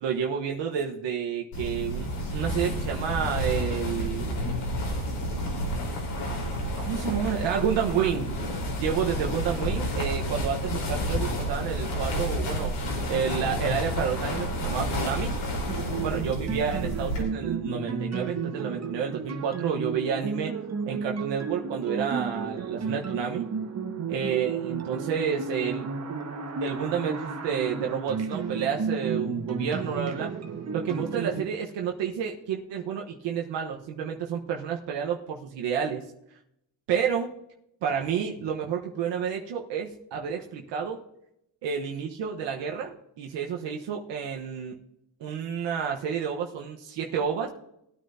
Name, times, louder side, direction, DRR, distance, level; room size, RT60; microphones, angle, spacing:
voice 1, 0.0-4.4 6.8-8.3 8.8-12.7 13.1-15.3 16.0-20.5 20.9-23.5 24.1-25.9 26.6-30.3 30.7-36.0 36.9-37.3 37.8-41.0 41.6-44.8 45.2-47.5, right 7 dB, 70° right, 1 dB, 1.3 m, -30 dB
sound 1, 1.5-17.2, equal, 80° left, 4.3 m, -30 dB
sound 2, 15.7-31.4, right 5 dB, 35° right, 1.5 m, -33 dB
19.0 x 9.3 x 2.8 m, 0.79 s
supercardioid pair, 80°, 44 cm